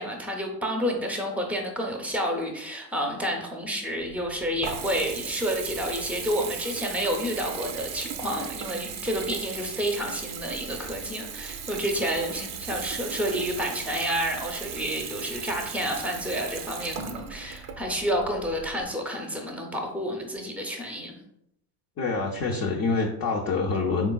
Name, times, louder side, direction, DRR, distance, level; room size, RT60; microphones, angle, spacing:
voice 1, 0.0-21.2, equal, 5° right, 2 dB, 0.7 m, -30 dB
Water tap faucet / Bathtub (filling or washing) / Trickle dribble, 4.0-18.8, right 7 dB, 35° right, 0.5 m, -37 dB
voice 2, 22.0-24.1, left 4 dB, 35° left, -2 dB, 0.6 m, -26 dB
3.7 x 3.5 x 2.3 m, 0.79 s
hypercardioid pair, 85°, 44 cm